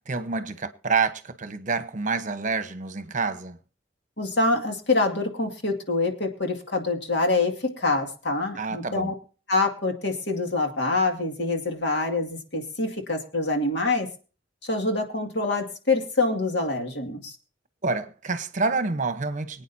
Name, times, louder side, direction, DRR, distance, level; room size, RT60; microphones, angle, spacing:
voice 1, 0.1-3.6 8.6-9.1 17.8-19.6, right 4 dB, 45° right, 1.0 m, -28 dB
voice 2, 4.2-9.1 9.5-14.1 14.6-17.4, left 3 dB, 65° left, 2.3 m, -25 dB
24.5 x 9.1 x 2.8 m
head